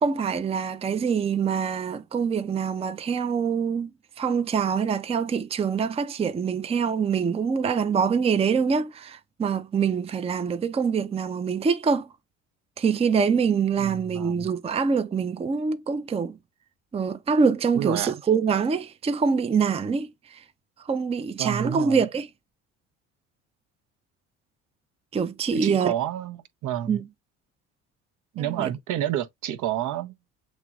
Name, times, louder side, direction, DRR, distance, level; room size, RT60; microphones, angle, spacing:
voice 1, 0.0-3.9 4.2-12.1 12.8-16.4 16.9-20.4 20.8-22.3 25.1-25.9 26.9-27.0 28.4-28.7, right 6 dB, 15° right, 0.5 m, -25 dB
voice 2, 13.8-14.5 17.7-18.2 21.4-22.0 25.5-27.0 28.3-30.1, right 11 dB, 60° right, 0.7 m, -30 dB
7.2 x 3.1 x 2.3 m
hypercardioid pair, 65°, 35 cm